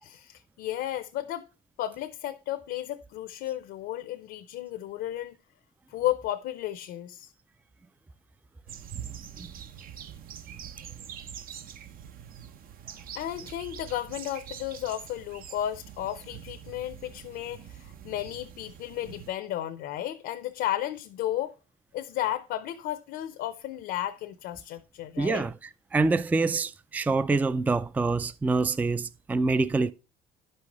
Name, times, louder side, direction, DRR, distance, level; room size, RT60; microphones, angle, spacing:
voice 1, 0.0-1.5 1.8-5.4 5.9-7.3 13.1-21.5 21.9-25.4, left 12 dB, 80° left, 0.7 m, -33 dB
sound 1, 8.7-19.3, right 9 dB, 60° right, 0.8 m, -44 dB
voice 2, 25.2-25.5 25.9-29.9, right 3 dB, 10° right, 0.3 m, -26 dB
11.0 x 5.6 x 3.0 m
cardioid pair, 110°, 17 cm